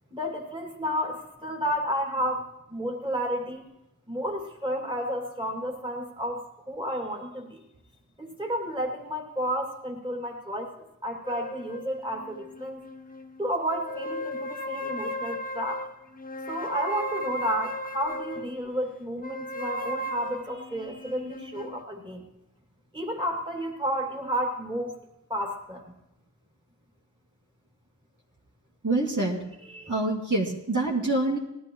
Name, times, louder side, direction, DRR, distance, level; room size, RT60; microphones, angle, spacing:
voice 1, 0.1-3.6 4.1-7.6 8.2-10.7 11.0-12.8 13.4-15.8 16.5-22.2 22.9-25.0 25.3-25.8 29.6-29.9, equal, 15° right, 0 dB, 2.6 m, -31 dB
sound 1, 11.2-13.3 13.7-18.5 19.2-21.8, equal, 25° left, 0.8 m, -36 dB
voice 2, 28.8-29.4 29.9-31.4, right 2 dB, 55° right, -2 dB, 2.4 m, -26 dB
19.0 x 13.5 x 3.1 m, 0.88 s
wide cardioid pair, 70°, 36 cm